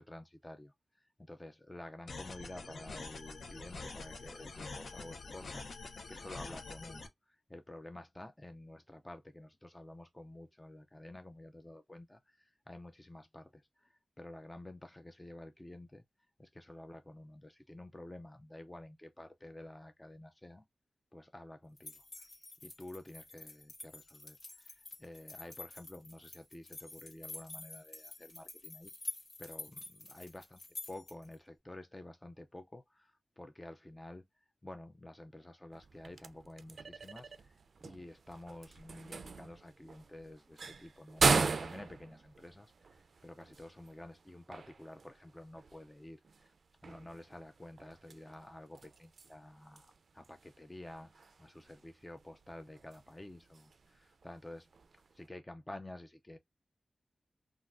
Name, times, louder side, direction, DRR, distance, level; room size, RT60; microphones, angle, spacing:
voice 1, 0.0-16.0 16.4-20.6 21.1-22.3 22.6-28.9 29.4-30.6 30.9-46.5 46.8-54.7 55.1-56.4, left 1 dB, 15° left, 0.4 m, -51 dB
sound 1, 2.1-7.1, left 3 dB, 75° left, 0.6 m, -46 dB
sound 2, 21.8-31.3, left 3 dB, 50° left, 1.5 m, -48 dB
sound 3, 35.7-55.3, right 4 dB, 75° right, 0.3 m, -39 dB
3.4 x 2.3 x 2.4 m
wide cardioid pair, 90°, 0 cm